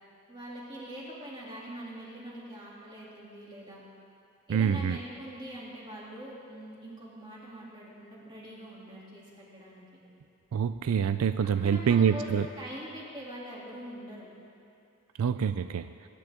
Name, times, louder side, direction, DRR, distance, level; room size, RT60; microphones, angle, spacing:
voice 1, 0.3-3.8 4.5-9.9 11.6-14.3, equal, 20° right, -6 dB, 2.8 m, -43 dB
voice 2, 4.5-5.0 10.5-12.5 15.2-15.9, right 7 dB, 75° right, 11 dB, 0.3 m, -26 dB
22.5 x 10.5 x 3.6 m, 2.5 s
head